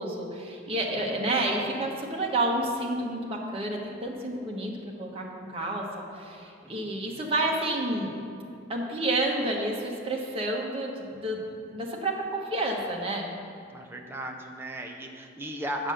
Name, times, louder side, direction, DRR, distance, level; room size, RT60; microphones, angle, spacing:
voice 1, 0.0-5.8 6.1-8.1 8.7-13.3, right 1 dB, 30° right, -1 dB, 1.1 m, -30 dB
voice 2, 6.6-7.3 13.7-15.9, equal, 10° right, 2 dB, 0.6 m, -36 dB
7.3 x 6.7 x 6.3 m, 2.4 s
head